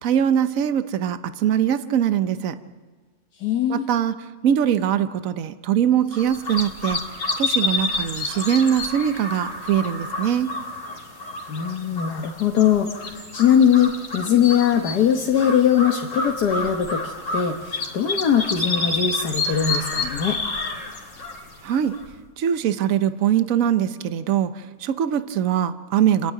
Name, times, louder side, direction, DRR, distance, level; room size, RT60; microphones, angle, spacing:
voice 1, 0.0-2.6 3.7-4.1 4.4-7.0 7.4-10.6 21.6-22.0 22.4-26.3, right 9 dB, 60° right, 11 dB, 1.2 m, -22 dB
voice 2, 3.4-3.9 11.5-20.4, left 8 dB, 85° left, 3 dB, 1.7 m, -21 dB
sound 1, 6.1-22.2, left 3 dB, 50° left, 2.3 m, -29 dB
29.5 x 9.8 x 9.2 m, 1.4 s
omnidirectional pair, 1.7 m